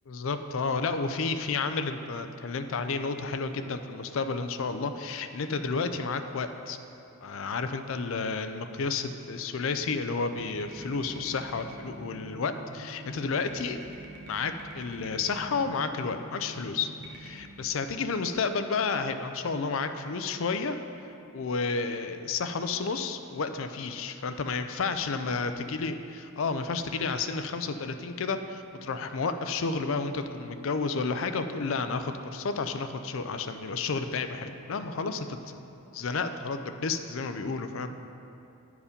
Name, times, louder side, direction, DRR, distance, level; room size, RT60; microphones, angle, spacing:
voice 1, 0.1-6.8 7.2-13.8 14.3-20.8 21.3-35.6 35.9-37.9, left 4 dB, 65° left, 8 dB, 0.4 m, -31 dB
sound 1, 10.3-17.4, right 1 dB, 50° right, 0.9 m, -46 dB
9.7 x 4.8 x 5.1 m, 2.8 s
head